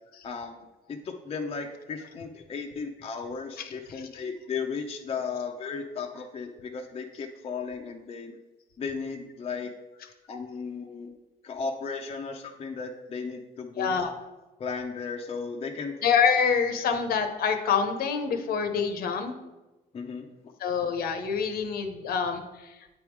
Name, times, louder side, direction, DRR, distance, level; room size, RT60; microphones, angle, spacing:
voice 1, 0.2-0.6 0.9-8.3 8.8-9.7 10.3-11.1 11.4-14.0 14.6-15.9 16.8-16.9 19.9-20.3, left 5 dB, 35° left, 2 dB, 0.6 m, -35 dB
voice 2, 13.8-14.1 16.0-19.3 20.6-22.4, left 6 dB, 65° left, 6 dB, 0.8 m, -26 dB
8.5 x 3.6 x 4.6 m, 1.1 s
cardioid pair, 110°, 17 cm